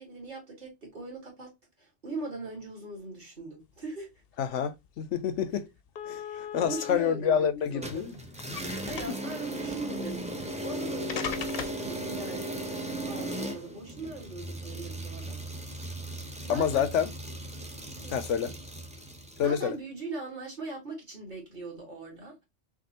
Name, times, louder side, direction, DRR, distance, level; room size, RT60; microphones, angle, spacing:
voice 1, 0.0-4.1 6.2-8.2 8.8-12.5 13.1-15.6 16.3-16.8 18.0-18.2 19.4-22.4, right 3 dB, 40° right, 1.9 m, -41 dB
voice 2, 4.4-5.7 6.0-8.2 9.1-9.2 16.5-17.1 18.1-18.5 19.4-19.7, left 8 dB, 85° left, 1.0 m, -28 dB
sound 1, 4.9-5.0 5.3-5.4 6.0-6.9 7.8-8.6 8.9-9.3 10.5-10.6 11.1-11.9, left 7 dB, 60° left, 0.8 m, -37 dB
sound 2, 7.8-19.6, right 1 dB, 10° right, 0.5 m, -37 dB
5.9 x 2.7 x 2.8 m
omnidirectional pair, 1.2 m